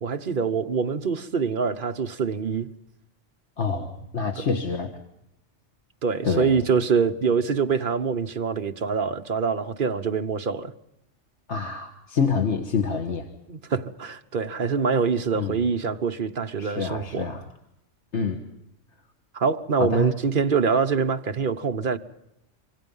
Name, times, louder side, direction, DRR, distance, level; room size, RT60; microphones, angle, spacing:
voice 1, 0.0-2.7 6.0-10.7 13.5-17.3 19.3-22.0, right 5 dB, 45° right, 1.1 m, -25 dB
voice 2, 3.6-4.9 6.2-6.5 11.5-13.2 15.3-15.6 16.6-17.4 18.1-18.4 19.8-20.1, left 5 dB, 65° left, 1.8 m, -26 dB
26.5 x 24.5 x 5.5 m
omnidirectional pair, 1.3 m